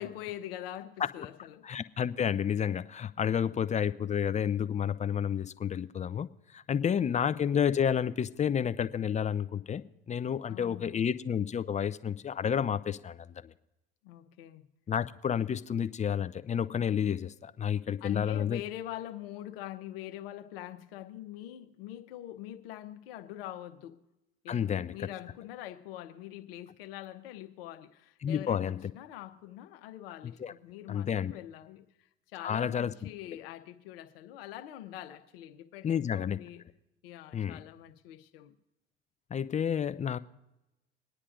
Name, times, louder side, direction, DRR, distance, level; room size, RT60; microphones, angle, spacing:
voice 1, 0.0-1.7 6.8-7.5 10.5-11.1 14.0-14.6 18.0-24.0 24.4-36.6 37.0-38.5, left 13 dB, 75° left, 1.0 m, -44 dB
voice 2, 1.6-13.5 14.9-18.6 24.5-25.1 28.2-28.9 30.2-30.5 30.9-31.3 32.4-32.9 35.8-36.4 37.3-37.6 39.3-40.2, left 8 dB, 25° left, 0.5 m, -30 dB
26.0 x 9.8 x 2.5 m
hypercardioid pair, 65°, 30 cm